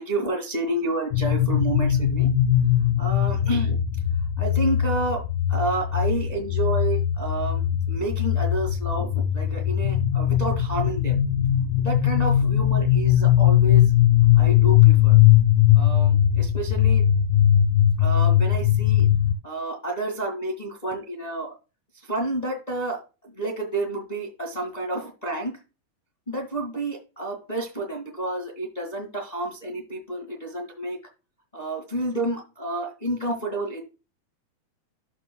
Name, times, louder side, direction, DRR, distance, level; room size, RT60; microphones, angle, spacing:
voice 1, 0.0-2.3 3.0-3.8 4.4-5.2 5.5-7.6 7.9-11.2 11.8-13.8 14.3-15.2 15.7-17.0 18.0-19.1 19.4-21.5 22.1-23.0 23.4-25.5 26.3-31.0 31.5-33.8, right 2 dB, 45° left, 1 dB, 0.5 m, -30 dB
sound 1, 1.1-19.3, left 11 dB, 90° left, 3.2 m, -20 dB
13.0 x 5.3 x 2.2 m, 0.29 s
omnidirectional pair, 4.4 m